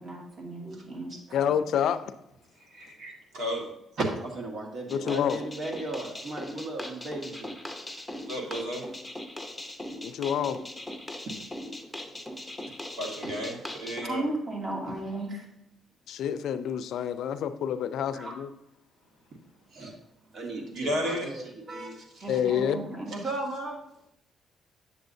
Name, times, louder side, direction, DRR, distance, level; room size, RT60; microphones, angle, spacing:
voice 1, 0.0-1.2 14.0-15.4 18.1-18.3 20.6-20.7 22.2-23.2, right 2 dB, 40° right, -2 dB, 2.5 m, -35 dB
voice 2, 1.3-2.0 4.9-5.4 10.0-10.6 16.1-18.5 22.3-22.8, left 9 dB, 75° left, 12 dB, 0.4 m, -28 dB
voice 3, 2.7-3.1 4.2-7.6 19.7-19.9 20.3-22.4 23.1-23.8, right 2 dB, 60° right, 1 dB, 1.7 m, -37 dB
voice 4, 3.3-3.6 8.3-8.8 13.0-14.2 20.7-21.3, equal, 85° right, -1 dB, 1.8 m, -32 dB
sound 1, 4.9-14.0, left 1 dB, 5° left, 0.7 m, -40 dB
8.9 x 6.9 x 2.7 m, 0.81 s
cardioid pair, 90°, 0 cm